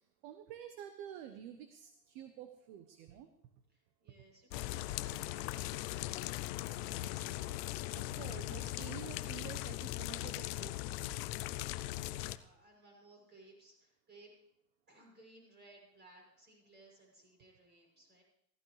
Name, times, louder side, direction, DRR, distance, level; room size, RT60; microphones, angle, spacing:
voice 1, 0.0-3.3 7.0-7.1 7.9-11.2, right 10 dB, 45° right, 9 dB, 1.1 m, -50 dB
voice 2, 3.7-7.6 11.8-14.3 14.9-18.2, right 1 dB, 20° right, 0 dB, 7.2 m, -61 dB
sound 1, 4.5-12.4, left 16 dB, 40° left, 0.5 m, -39 dB
16.5 x 15.0 x 3.3 m, 0.75 s
hypercardioid pair, 115°, 48 cm